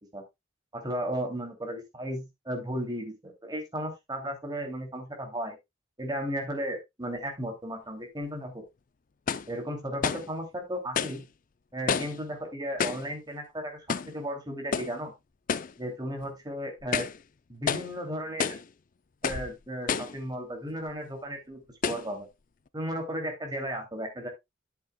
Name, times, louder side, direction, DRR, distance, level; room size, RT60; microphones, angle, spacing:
voice 1, 0.7-5.6 6.0-8.6 9.5-11.2 11.7-13.8 14.1-15.1 15.8-17.1 17.5-18.6 19.2-21.6 21.9-22.3 22.7-24.3, equal, 20° right, 3 dB, 2.7 m, -35 dB
sound 1, 8.2-8.3 9.3-9.5 10.0-10.3 11.0-11.2 11.9-12.2 12.8-13.1 13.9-14.2 14.7-15.0 15.5-15.8 16.2-16.3 16.8-17.2 17.7-17.9 18.4-18.7 19.2-19.5 19.9-20.2 20.9-21.0 21.8-22.1, left 6 dB, 45° left, 0.5 m, -30 dB
10.0 x 8.3 x 2.3 m, 0.20 s
head